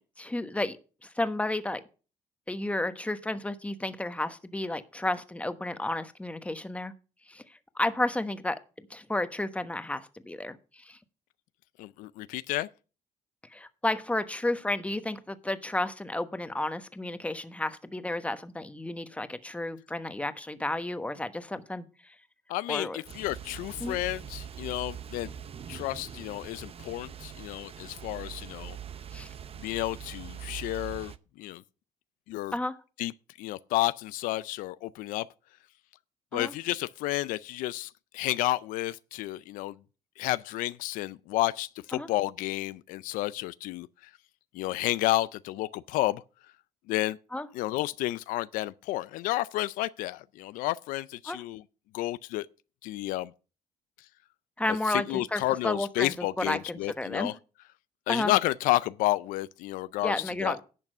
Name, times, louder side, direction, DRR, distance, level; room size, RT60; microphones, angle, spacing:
voice 1, 0.2-0.8 1.0-1.8 2.5-6.9 7.3-7.4 7.7-8.6 8.9-11.0 13.5-21.8 22.7-23.0 23.8-24.0 29.1-29.3 32.5-32.7 36.3-36.5 41.9-42.1 47.3-47.5 51.3-51.4 54.6-56.1 56.5-57.3 58.1-58.3 60.0-60.6, left 2 dB, 10° left, 1.1 m, -32 dB
voice 2, 11.8-12.7 22.5-25.3 25.7-28.8 29.6-31.6 32.3-32.5 33.0-33.1 33.4-35.3 36.3-39.8 40.2-44.1 44.5-46.2 46.9-47.2 47.5-51.6 51.9-52.5 52.8-53.3 54.7-57.4 58.1-60.6, left 17 dB, 90° left, 0.4 m, -31 dB
sound 1, 23.1-31.2, right 9 dB, 45° right, 0.7 m, -43 dB
11.0 x 5.9 x 6.5 m
cardioid pair, 80°, 13 cm